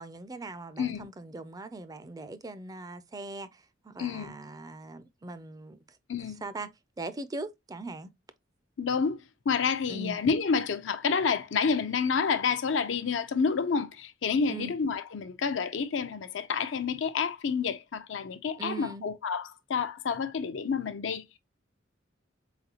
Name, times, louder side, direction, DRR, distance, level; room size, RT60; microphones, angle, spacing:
voice 1, 0.0-5.8 6.4-6.7 7.0-8.1 9.9-10.2 14.5-14.7 18.6-19.1, right 2 dB, 20° right, 0.4 m, -40 dB
voice 2, 4.0-4.3 6.1-6.4 8.8-9.2 9.5-21.4, left 5 dB, 75° left, 0.5 m, -29 dB
4.0 x 4.0 x 2.8 m
head